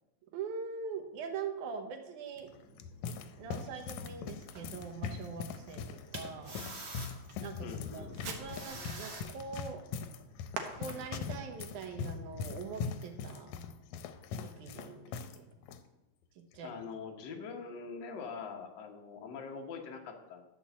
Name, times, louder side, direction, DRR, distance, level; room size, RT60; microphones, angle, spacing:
voice 1, 0.3-2.5 3.1-5.8 6.1-6.6 7.4-7.7 7.9-9.8 10.7-13.6 14.4-15.1 15.3-15.6 16.4-16.7, right 5 dB, 90° right, 5 dB, 2.5 m, -43 dB
Fireworks, 2.3-13.0, right 5 dB, 70° right, 2.1 m, -51 dB
sound 1, 2.5-15.4 15.6-15.8 16.5-16.8, left 6 dB, 90° left, 2.0 m, -41 dB
sound 2, 4.5-4.7 5.2-5.3 6.1-7.6 8.5-9.2, right 3 dB, 40° right, 0.9 m, -45 dB
voice 2, 7.6-8.1 16.6-20.4, left 5 dB, 55° left, 2 dB, 1.4 m, -43 dB
11.5 x 4.6 x 7.1 m, 1.0 s
omnidirectional pair, 3.3 m